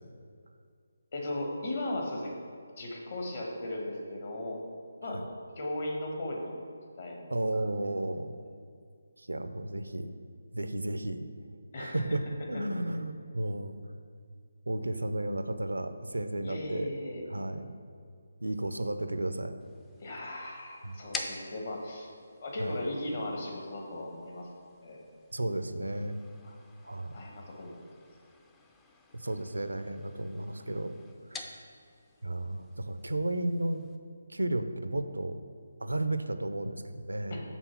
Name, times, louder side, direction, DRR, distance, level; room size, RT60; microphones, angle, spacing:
voice 1, 1.1-2.3 2.8-4.6 5.0-5.2 5.6-6.6 7.0-7.3 7.5-7.6 11.7-12.0 16.4-17.2 20.0-24.4 24.8-25.0 26.4-26.5 27.1-27.8 37.3-37.4, left 1 dB, 50° left, 0 dB, 1.4 m, -37 dB
voice 2, 7.3-8.4 9.2-10.1 10.5-11.3 11.8-12.2 12.5-13.7 14.7-17.0 17.3-17.8 18.4-19.6 20.8-21.0 22.6-22.8 25.3-26.2 26.8-27.2 29.1-30.9 31.3-31.5 32.2-33.9 34.3-35.4 35.8-37.4, right 1 dB, 85° right, 9 dB, 0.5 m, -33 dB
sound 1, 19.6-34.0, left 3 dB, 10° left, 0.4 m, -49 dB
6.1 x 3.8 x 5.7 m, 2.2 s
figure-of-eight pair, 150°, 0 cm